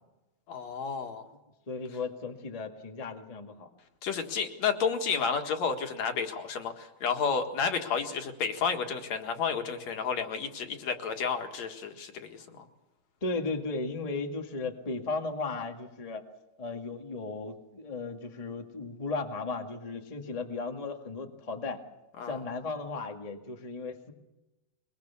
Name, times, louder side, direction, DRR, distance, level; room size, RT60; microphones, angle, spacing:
voice 1, 0.5-1.2 4.0-12.7 22.2-22.4, left 6 dB, 55° left, 5 dB, 2.6 m, -31 dB
voice 2, 1.7-3.7 13.2-16.2 16.6-21.8 22.3-24.1, left 3 dB, 80° left, 3 dB, 0.3 m, -35 dB
23.0 x 22.5 x 7.1 m, 1.0 s
omnidirectional pair, 4.4 m